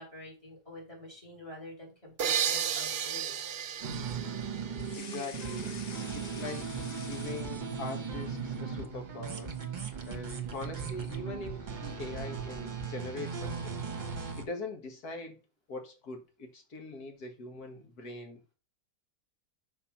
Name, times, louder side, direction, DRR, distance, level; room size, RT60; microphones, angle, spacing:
voice 1, 0.0-3.3, left 1 dB, 20° left, 3.0 m, -47 dB
sound 1, 2.2-5.7, right 8 dB, 60° right, 0.7 m, -34 dB
sound 2, 3.8-14.4, right 6 dB, 35° right, 1.0 m, -37 dB
sound 3, 4.7-8.0 8.3-9.0, left 5 dB, 50° left, 0.5 m, -48 dB
voice 2, 4.9-5.8 6.1-6.7 7.0-9.5 10.0-13.9 14.4-15.4 15.7-18.5, left 3 dB, 85° left, 2.0 m, -42 dB
5.9 x 4.5 x 5.8 m
omnidirectional pair, 1.6 m